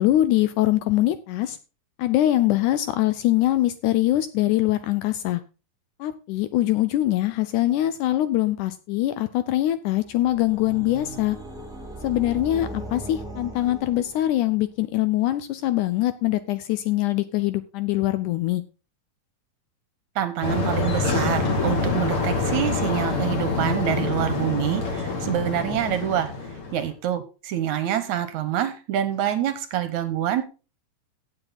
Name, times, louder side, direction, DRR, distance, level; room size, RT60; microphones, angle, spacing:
voice 1, 0.0-1.6 2.0-5.4 6.0-11.4 12.0-18.6, left 14 dB, 80° left, 13 dB, 1.9 m, -23 dB
sound 1, 9.9-14.6, right 1 dB, ahead, 1.9 m, -38 dB
voice 2, 20.2-26.3 26.7-30.4, right 11 dB, 70° right, 11 dB, 2.0 m, -26 dB
sound 2, 20.4-26.9, left 3 dB, 40° left, 3.0 m, -26 dB
16.0 x 7.3 x 4.0 m, 0.33 s
omnidirectional pair, 4.1 m